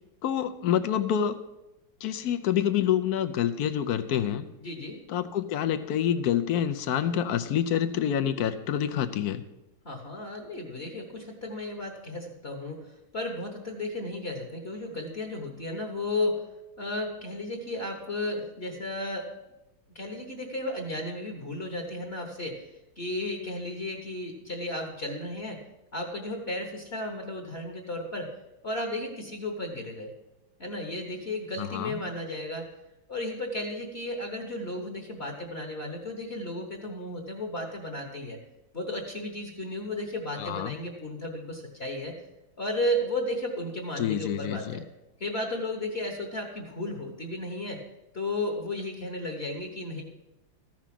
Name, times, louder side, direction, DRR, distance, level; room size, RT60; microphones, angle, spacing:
voice 1, 0.2-1.4 2.0-4.4 5.1-9.4 31.6-32.0 40.4-40.7 44.0-44.8, left 9 dB, 70° left, 11 dB, 0.9 m, -27 dB
voice 2, 4.6-5.0 9.8-16.4 16.8-19.3 19.9-22.6 23.0-25.6 25.9-28.3 28.6-30.1 30.6-32.7 33.1-38.4 38.7-42.2 42.6-44.8 45.2-47.8 48.1-50.0, left 1 dB, 35° left, 1 dB, 1.2 m, -34 dB
14.0 x 6.1 x 5.9 m, 0.95 s
omnidirectional pair, 2.2 m